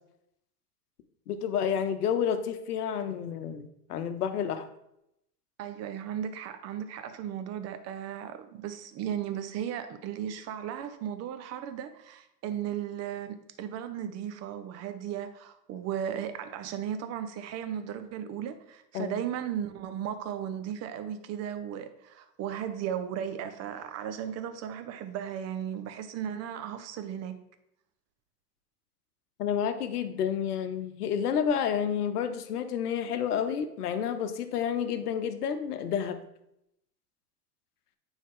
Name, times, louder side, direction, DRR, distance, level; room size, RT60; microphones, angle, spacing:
voice 1, 1.3-4.7 18.9-19.2 29.4-36.2, left 8 dB, 70° left, 10 dB, 0.8 m, -30 dB
voice 2, 5.6-27.3, right 9 dB, 35° right, 9 dB, 0.7 m, -36 dB
9.2 x 3.7 x 3.6 m, 0.81 s
hypercardioid pair, 90°, 47 cm